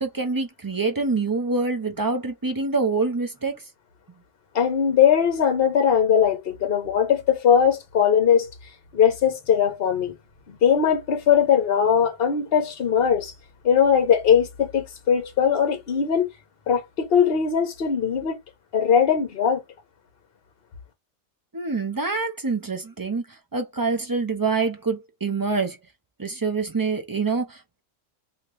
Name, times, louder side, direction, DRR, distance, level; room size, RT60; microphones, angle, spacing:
voice 1, 0.0-3.7 21.5-25.8 26.2-27.8, right 4 dB, 35° right, 0.3 m, -26 dB
voice 2, 4.5-8.5 8.9-10.1 10.5-13.3 13.6-16.3 16.7-18.4 18.7-19.6, left 8 dB, 50° left, 1.1 m, -20 dB
2.9 x 2.9 x 3.2 m
omnidirectional pair, 1.3 m